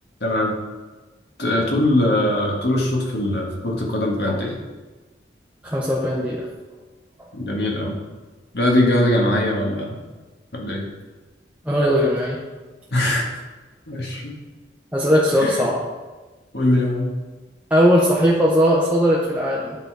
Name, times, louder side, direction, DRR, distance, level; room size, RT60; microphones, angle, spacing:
voice 1, 0.2-0.6 1.4-4.6 7.3-8.0 8.5-10.0 10.5-10.8 12.9-13.3 13.9-14.3 15.3-15.6 16.5-17.1, left 1 dB, 60° left, -1 dB, 1.5 m, -21 dB
voice 2, 5.6-6.5 11.7-12.4 14.9-15.8 17.7-19.8, equal, 10° right, -5 dB, 0.8 m, -18 dB
9.0 x 4.1 x 4.6 m, 1.2 s
head